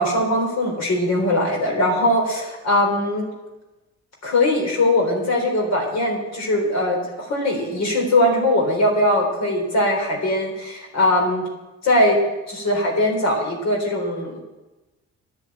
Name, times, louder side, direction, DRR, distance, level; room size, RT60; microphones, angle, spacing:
voice 1, 0.0-3.3 4.2-11.4 11.8-12.2 12.5-14.4, left 1 dB, 60° left, 1 dB, 3.9 m, -20 dB
10.5 x 10.0 x 9.0 m, 1.1 s
cardioid pair, 90°, 30 cm